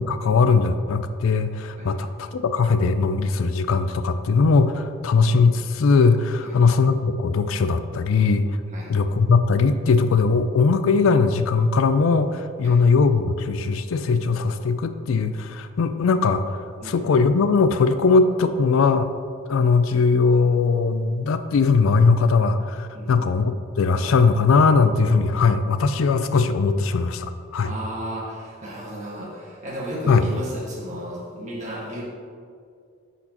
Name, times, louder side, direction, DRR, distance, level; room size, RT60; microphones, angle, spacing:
voice 1, 0.0-8.6 8.9-16.6 16.8-19.1 19.5-27.7 30.1-30.3, left 4 dB, 75° left, 10 dB, 0.4 m, -20 dB
voice 2, 22.9-23.3 27.6-32.0, equal, 35° right, -5 dB, 1.6 m, -34 dB
10.5 x 4.2 x 2.9 m, 2.3 s
head